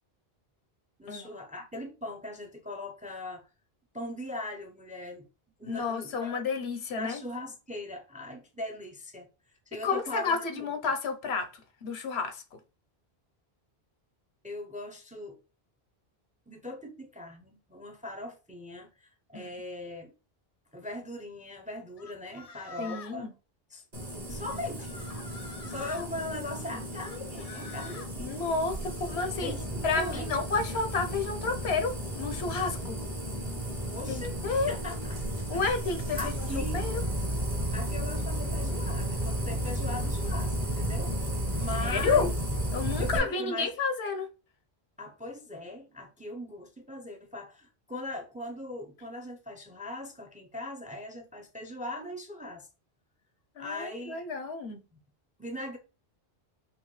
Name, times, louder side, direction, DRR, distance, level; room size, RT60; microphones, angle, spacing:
voice 1, 1.0-3.4 3.9-5.3 5.6-6.3 7.0-9.3 9.7-10.7 14.4-15.4 16.5-20.1 20.7-23.3 23.7-23.8 24.3-24.9 25.6-28.3 29.4-30.3 33.8-34.4 34.7-35.2 35.5-35.8 36.2-36.9 37.7-41.1 41.5-42.3 43.0-43.7 45.0-52.7 53.6-54.2 54.9-55.0 55.4-55.8, left 1 dB, 10° right, 0.4 m, -40 dB
voice 2, 5.6-7.2 9.8-11.5 11.8-12.4 19.3-19.5 22.8-23.3 28.2-29.5 29.8-33.0 34.1-34.7 35.5-36.9 41.8-42.3 42.7-44.3 53.6-54.8, left 4 dB, 85° left, 1.0 m, -31 dB
sound 1, 22.0-23.2 24.4-26.1 27.0-28.1, left 6 dB, 55° left, 0.4 m, -47 dB
sound 2, 23.9-43.2, right 1 dB, 40° right, 1.3 m, -33 dB
5.6 x 2.4 x 3.1 m
omnidirectional pair, 1.0 m